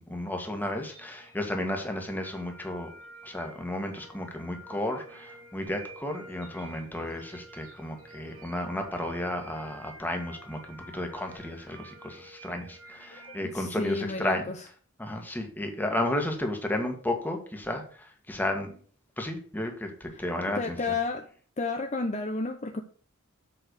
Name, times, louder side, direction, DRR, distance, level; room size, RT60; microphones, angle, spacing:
voice 1, 0.0-2.9 3.2-14.5 15.0-18.8 19.2-20.8, left 1 dB, 10° left, 4 dB, 1.7 m, -33 dB
sound 1, 0.6-13.7, right 2 dB, 80° right, 3.2 m, -50 dB
voice 2, 13.1-14.6 20.1-20.2 20.5-21.3 21.6-22.8, left 3 dB, 35° left, 4 dB, 0.8 m, -32 dB
7.9 x 5.5 x 6.5 m, 0.43 s
head